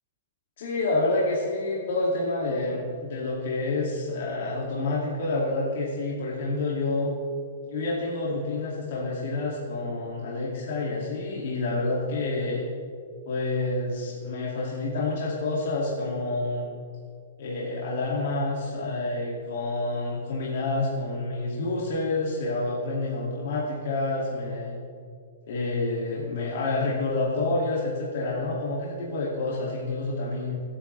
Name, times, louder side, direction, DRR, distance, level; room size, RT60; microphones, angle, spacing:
voice 1, 0.6-7.1 7.7-12.6 13.3-16.7 17.4-24.8 25.5-30.6, left 2 dB, 45° left, -4 dB, 2.2 m, -28 dB
24.0 x 8.8 x 3.3 m, 2.2 s
hypercardioid pair, 180°, 0 cm